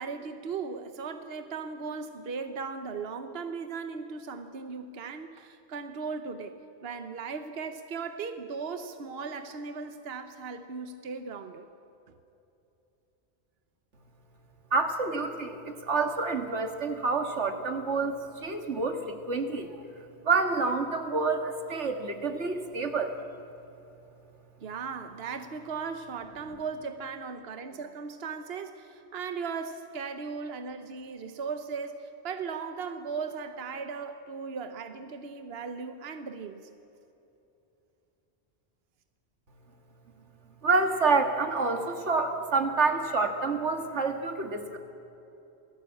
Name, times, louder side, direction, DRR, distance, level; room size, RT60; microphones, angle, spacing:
voice 1, 0.0-11.7 24.6-36.7, right 5 dB, 60° right, 8 dB, 1.2 m, -37 dB
voice 2, 14.7-19.8 20.2-23.1 40.6-44.8, right 4 dB, 90° right, 6 dB, 2.1 m, -28 dB
28.0 x 18.5 x 8.5 m, 2.9 s
omnidirectional pair, 1.1 m